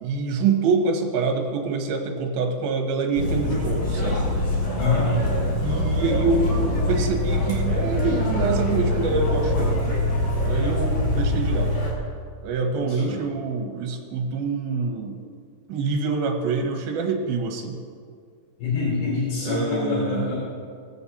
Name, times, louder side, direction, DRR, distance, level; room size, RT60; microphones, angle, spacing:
voice 1, 0.0-4.2 5.6-9.8 10.4-11.8 12.4-15.2 15.7-17.8 19.4-20.3, right 4 dB, 70° right, 3 dB, 3.0 m, -26 dB
sound 1, 3.2-11.9, left 1 dB, 55° left, 4.5 m, -24 dB
voice 2, 4.7-5.1 13.0-13.2 18.6-20.3, left 4 dB, 70° left, -9 dB, 5.0 m, -25 dB
20.5 x 8.0 x 4.2 m, 2.1 s
omnidirectional pair, 4.6 m